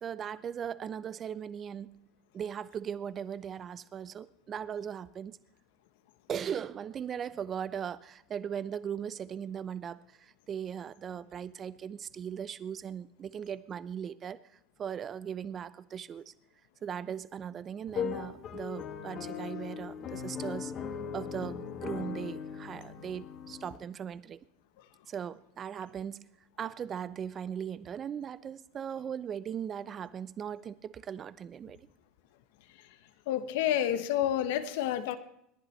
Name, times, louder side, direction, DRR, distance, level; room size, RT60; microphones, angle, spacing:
voice 1, 0.0-2.0 2.3-5.4 6.3-14.4 14.8-16.3 16.8-20.7 21.1-24.5 25.1-26.3 26.6-31.8, right 8 dB, 35° right, 0.7 m, -38 dB
sound 1, 17.9-23.8, left 7 dB, 45° left, 1.9 m, -39 dB
voice 2, 33.3-35.2, left 11 dB, 70° left, 1.1 m, -29 dB
28.5 x 11.0 x 3.3 m
hypercardioid pair, 95°, 0 cm